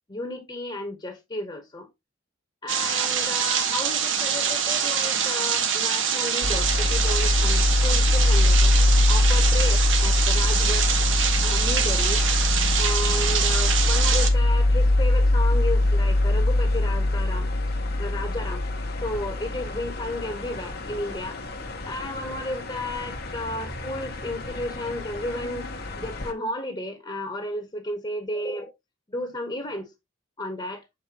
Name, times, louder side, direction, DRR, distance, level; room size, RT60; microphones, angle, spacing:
voice 1, 0.1-1.9 2.6-8.8 9.1-10.9 11.4-12.2 12.8-17.5 18.0-18.6 19.0-21.4 21.9-25.7 26.0-28.7 29.1-29.9 30.4-30.8, left 1 dB, 25° left, 1.3 m, -33 dB
sound 1, 2.7-14.3, right 7 dB, 65° right, 1.2 m, -25 dB
sound 2, 6.4-26.3, left 1 dB, 50° left, 1.1 m, -23 dB
7.6 x 4.6 x 3.0 m
head